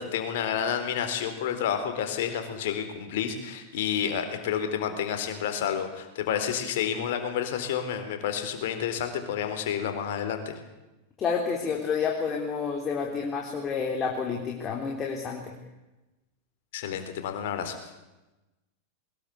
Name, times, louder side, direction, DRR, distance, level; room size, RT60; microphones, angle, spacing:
voice 1, 0.0-10.6 16.7-17.9, left 8 dB, 55° left, 8 dB, 4.1 m, -30 dB
voice 2, 11.2-15.5, left 5 dB, 25° left, 1 dB, 3.8 m, -29 dB
22.5 x 21.0 x 8.5 m, 1.0 s
figure-of-eight pair, 90°, 0 cm